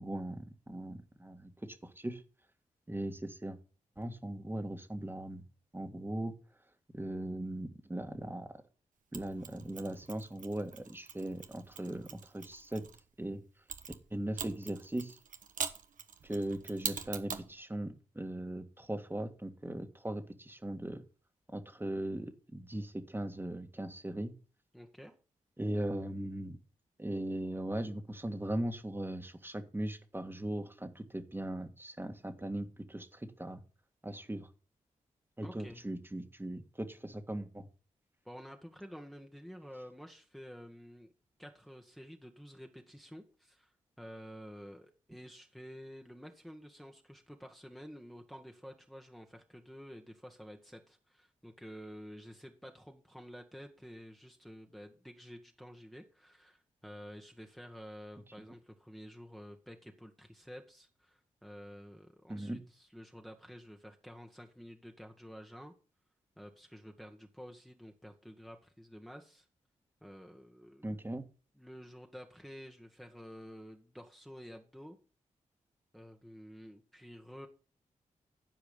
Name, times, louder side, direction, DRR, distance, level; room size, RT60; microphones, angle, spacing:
voice 1, 0.0-2.2 2.9-3.6 4.0-5.4 5.7-6.3 6.9-8.5 9.1-12.8 13.2-13.4 14.1-15.2 16.2-21.0 21.5-24.3 25.6-26.6 27.0-33.6 34.0-34.5 35.4-37.7 62.3-62.6 70.8-71.2, right 1 dB, 15° right, 6 dB, 1.7 m, -39 dB
Mechanisms, 9.1-13.0 13.7-17.5, right 6 dB, 75° right, 1.1 m, -43 dB
voice 2, 24.7-25.1 35.4-35.8 38.2-41.1 41.4-65.7 66.4-69.5 70.0-71.0 71.5-75.0 75.9-77.5, equal, ahead, 2 dB, 1.5 m, -50 dB
12.0 x 4.9 x 6.9 m, 0.37 s
cardioid pair, 55°, 14 cm